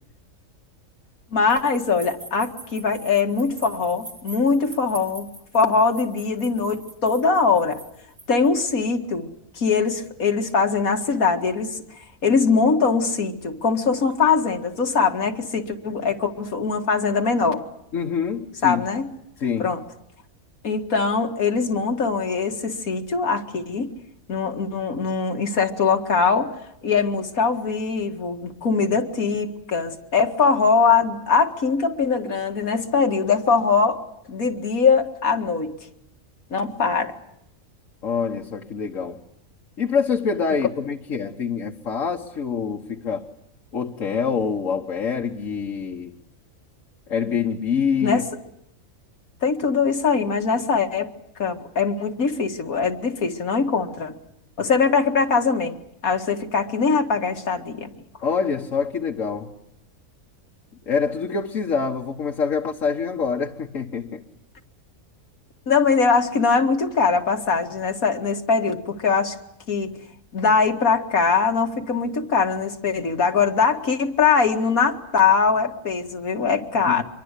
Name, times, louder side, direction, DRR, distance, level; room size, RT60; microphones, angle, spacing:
voice 1, 1.3-5.3 5.5-7.8 8.3-9.3 9.6-11.8 12.2-17.6 18.6-19.1 19.6-19.8 20.6-23.9 24.3-26.5 26.8-34.0 34.3-35.8 36.5-37.1 48.0-48.2 49.4-51.1 51.4-54.2 54.6-55.8 56.0-57.9 65.7-69.4 69.7-69.9 70.3-77.0, left 5 dB, 85° left, 2.4 m, -22 dB
sound 1, 1.5-8.5, right 3 dB, 55° right, 3.4 m, -43 dB
voice 2, 17.9-18.8 19.4-19.7 38.0-39.2 39.8-43.3 43.7-46.1 47.1-48.2 58.2-59.5 60.9-64.2 76.9-77.0, left 6 dB, 65° left, 1.8 m, -25 dB
25.5 x 23.0 x 8.3 m
omnidirectional pair, 1.4 m